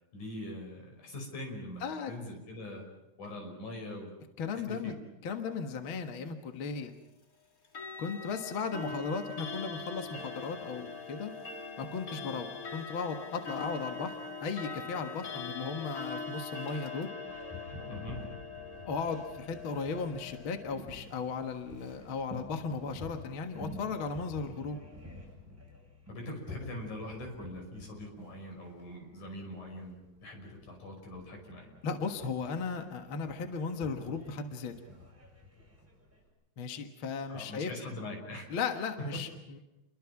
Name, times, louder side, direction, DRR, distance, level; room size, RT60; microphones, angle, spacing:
voice 1, 0.1-2.9 3.2-4.1 4.7-5.0 17.9-18.3 26.1-31.7 37.3-38.5 39.0-39.1, left 1 dB, 75° left, 2 dB, 7.1 m, -42 dB
voice 2, 1.8-2.1 4.4-5.0 5.2-6.9 8.0-11.3 11.8-14.1 14.4-17.1 18.9-24.8 31.8-34.7 36.6-37.7 38.5-39.6, left 5 dB, 50° left, 6 dB, 2.0 m, -36 dB
Clock, 7.6-20.8, left 4 dB, 30° left, 2.1 m, -42 dB
Boat Water vehicle, 17.3-36.3, left 1 dB, 5° right, 7.6 m, -50 dB
30.0 x 22.5 x 6.0 m, 0.92 s
omnidirectional pair, 3.5 m